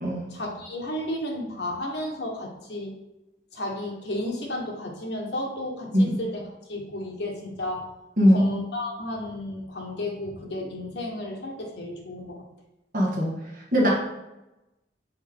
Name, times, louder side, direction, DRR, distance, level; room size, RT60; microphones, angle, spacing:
voice 1, 0.3-3.0 3.5-6.4 6.7-7.9 8.3-12.4, left 1 dB, 70° left, 0 dB, 1.3 m, -33 dB
voice 2, 8.2-8.5 12.9-13.4 13.7-13.9, equal, 50° right, -3 dB, 1.5 m, -20 dB
6.3 x 4.3 x 3.6 m, 0.97 s
head